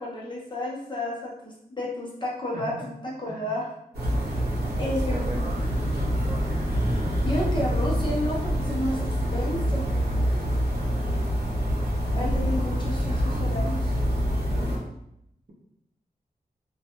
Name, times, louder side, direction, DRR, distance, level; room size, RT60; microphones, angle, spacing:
voice 1, 0.0-3.6 4.8-5.5 7.2-9.1 9.3-9.9 12.1-14.0, left 1 dB, 30° left, -4 dB, 0.7 m, -31 dB
voice 2, 2.5-2.9 3.3-3.5 5.1-5.4, equal, 50° right, -3 dB, 0.6 m, -37 dB
sound 1, 3.9-14.8, equal, 90° right, 0.7 m, -26 dB
2.2 x 2.2 x 2.8 m, 0.79 s
wide cardioid pair, 110°, 16 cm